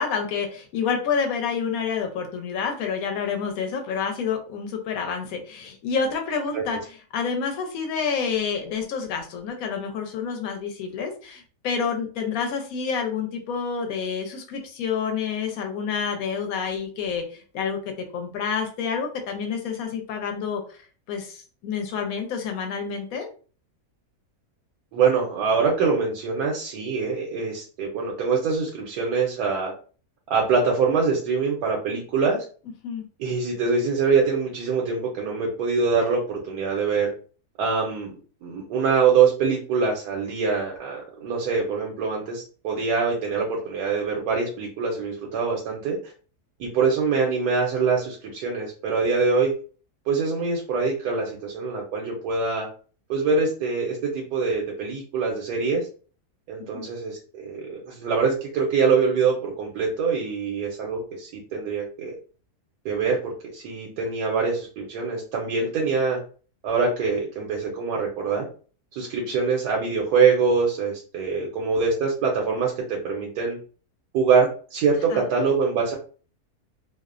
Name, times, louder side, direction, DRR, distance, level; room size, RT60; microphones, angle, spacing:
voice 1, 0.0-6.8 7.1-17.8 18.1-20.8 21.1-23.3 32.8-33.0 56.7-56.9 75.1-75.2, left 6 dB, 70° left, 4 dB, 1.0 m, -28 dB
voice 2, 24.9-29.7 30.3-32.4 33.2-37.1 37.6-38.1 38.4-46.1 46.6-49.5 50.1-52.7 53.1-55.8 56.5-62.1 62.8-66.2 66.6-68.4 68.9-73.6 74.1-76.0, right 5 dB, 80° right, 0 dB, 1.1 m, -24 dB
2.8 x 2.0 x 2.4 m, 0.39 s
omnidirectional pair, 1.7 m